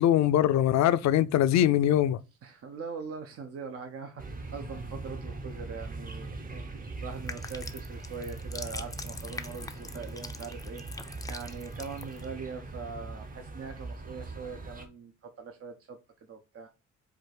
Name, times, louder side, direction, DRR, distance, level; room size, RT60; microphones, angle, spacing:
voice 1, 0.0-2.2, left 11 dB, 65° left, 0.5 m, -22 dB
voice 2, 2.4-16.7, right 5 dB, 50° right, 0.7 m, -42 dB
sound 1, 4.2-14.9, right 3 dB, 30° right, 0.9 m, -41 dB
sound 2, 7.1-12.3, left 3 dB, 10° left, 0.4 m, -44 dB
4.6 x 2.5 x 4.6 m
cardioid pair, 90°, 30 cm